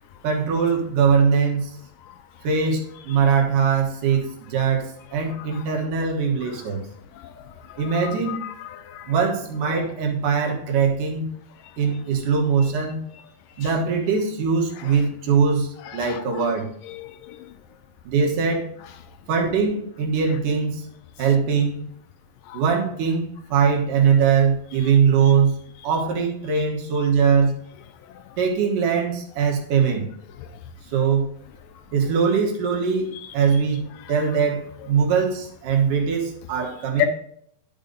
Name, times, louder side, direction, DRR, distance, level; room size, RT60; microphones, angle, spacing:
voice 1, 0.2-1.8 2.4-6.8 7.8-8.4 9.0-11.3 11.8-13.0 13.6-16.7 18.0-18.7 19.3-20.9 21.2-21.9 22.5-25.6 25.8-27.6 28.4-30.1 30.9-31.3 31.9-33.1 33.3-37.1, right 6 dB, 70° right, 2.8 m, -21 dB
voice 2, 8.0-9.1 16.0-16.4 17.0-17.1 37.0-37.1, left 13 dB, 80° left, 2.1 m, -29 dB
11.5 x 5.3 x 3.9 m
omnidirectional pair, 4.1 m